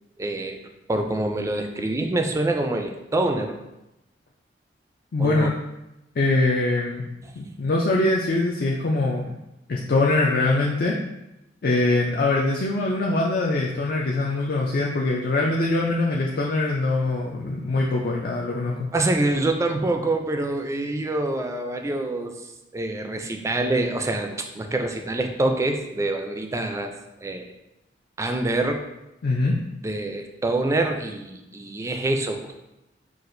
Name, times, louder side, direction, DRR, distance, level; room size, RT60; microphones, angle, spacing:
voice 1, 0.2-0.6 0.9-3.6 5.2-5.5 7.2-7.3 18.9-22.3 22.7-26.9 27.2-27.5 28.2-28.9 29.8-32.5, right 2 dB, 15° right, 4 dB, 0.3 m, -25 dB
voice 2, 5.1-5.5 6.2-7.0 7.4-9.3 9.7-11.0 11.6-18.9 29.2-29.6, left 2 dB, 55° left, -2 dB, 0.4 m, -23 dB
5.9 x 2.4 x 2.6 m, 0.94 s
head